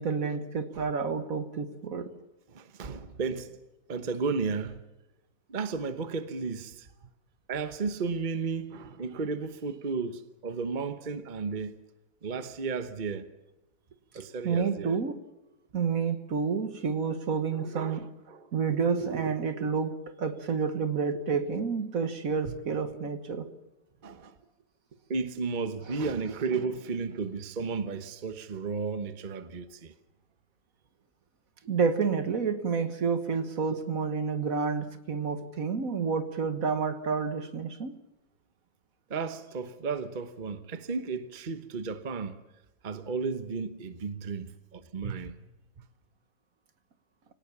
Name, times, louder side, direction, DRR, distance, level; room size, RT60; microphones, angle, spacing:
voice 1, 0.0-2.1 14.4-15.1 15.7-18.1 18.5-23.5 31.7-38.0, right 5 dB, 60° right, 1.8 m, -29 dB
voice 2, 2.5-3.6 3.9-4.8 5.5-6.9 7.5-11.8 12.2-13.3 14.1-15.0 17.6-18.5 22.5-22.6 24.0-24.3 25.1-29.9 39.1-42.4 42.8-45.4, right 4 dB, 35° right, 1.1 m, -33 dB
25.0 x 18.0 x 7.2 m
omnidirectional pair, 1.7 m